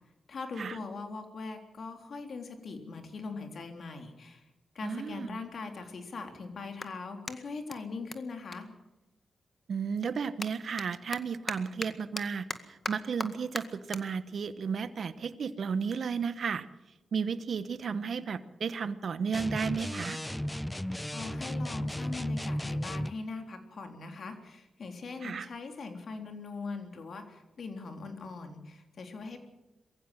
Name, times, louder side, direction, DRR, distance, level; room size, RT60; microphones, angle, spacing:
voice 1, 0.3-4.4 4.8-8.7 21.1-29.4, left 4 dB, 65° left, 5 dB, 3.5 m, -41 dB
voice 2, 4.8-5.4 9.7-16.7 17.1-20.2 25.2-25.5, right 6 dB, 70° right, 13 dB, 1.1 m, -33 dB
Clapping, 6.7-9.5 9.8-16.4, left 3 dB, 35° left, 1.9 m, -43 dB
sound 1, 19.3-23.2, left 1 dB, 10° left, 0.7 m, -34 dB
22.5 x 15.0 x 7.6 m, 0.97 s
supercardioid pair, 45°, 0 cm